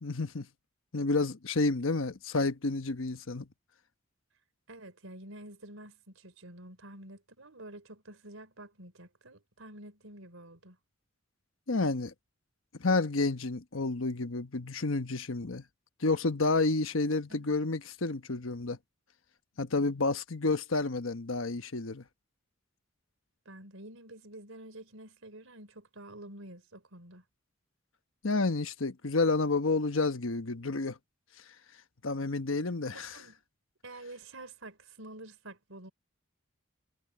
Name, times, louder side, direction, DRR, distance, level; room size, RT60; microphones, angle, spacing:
voice 1, 0.0-0.5 0.9-3.5 11.7-12.1 12.8-15.6 16.0-18.8 19.6-22.0 28.2-31.0 32.0-33.2, left 3 dB, 80° left, 1.2 m, -30 dB
voice 2, 4.7-10.8 17.3-17.5 23.5-27.2 32.9-33.4 33.8-35.9, right 1 dB, 85° right, 4.3 m, -49 dB
head